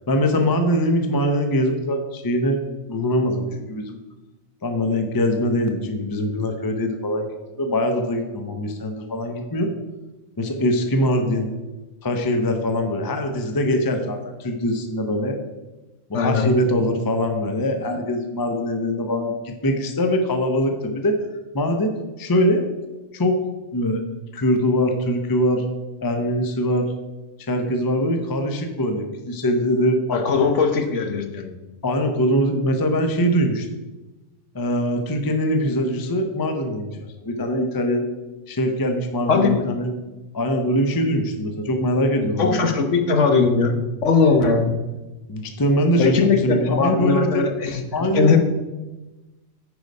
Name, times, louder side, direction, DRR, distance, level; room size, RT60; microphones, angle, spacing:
voice 1, 0.1-2.6 2.9-4.0 4.6-9.7 10.4-11.6 12.0-15.4 16.1-21.2 21.5-22.6 23.1-23.4 23.7-24.0 24.3-25.7 26.0-26.9 27.4-30.5 31.8-33.7 34.5-36.9 37.2-38.1 38.5-39.9 40.3-42.7 45.3-47.5 47.9-48.3, equal, 20° left, 5 dB, 0.6 m, -22 dB
voice 2, 16.1-16.5 30.1-31.5 39.3-39.5 42.4-43.8 44.0-44.6 46.0-47.8 48.1-48.4, left 5 dB, 70° left, 5 dB, 1.3 m, -19 dB
9.4 x 4.8 x 5.2 m, 1.1 s
omnidirectional pair, 1.3 m